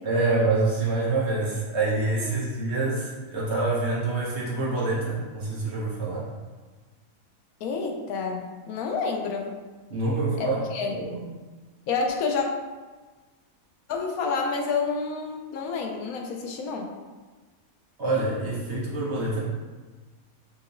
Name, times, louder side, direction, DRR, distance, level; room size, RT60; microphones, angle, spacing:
voice 1, 0.0-6.3 9.9-11.2 18.0-19.4, right 2 dB, 55° right, -7 dB, 1.3 m, -26 dB
voice 2, 7.6-9.5 10.4-10.9 11.9-12.5 13.9-16.9, left 4 dB, 90° left, 2 dB, 1.1 m, -29 dB
5.7 x 2.8 x 2.6 m, 1.3 s
omnidirectional pair, 1.5 m